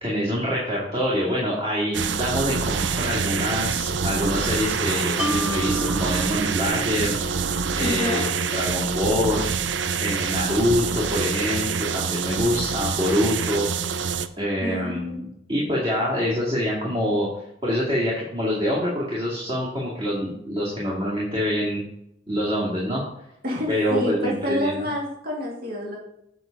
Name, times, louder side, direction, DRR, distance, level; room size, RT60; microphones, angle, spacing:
voice 1, 0.0-7.2 7.7-9.4 10.0-13.7 14.4-17.3 17.6-21.8 22.3-23.0 23.7-24.9, equal, 30° right, -5 dB, 2.3 m, -25 dB
sound 1, 1.9-14.3, right 6 dB, 65° right, 0.5 m, -26 dB
Mallet percussion, 5.2-8.5, right 2 dB, 5° right, 0.5 m, -32 dB
voice 2, 7.8-8.2 14.6-15.3 23.4-26.0, left 1 dB, 50° right, -3 dB, 2.3 m, -28 dB
8.1 x 5.8 x 5.2 m, 0.79 s
head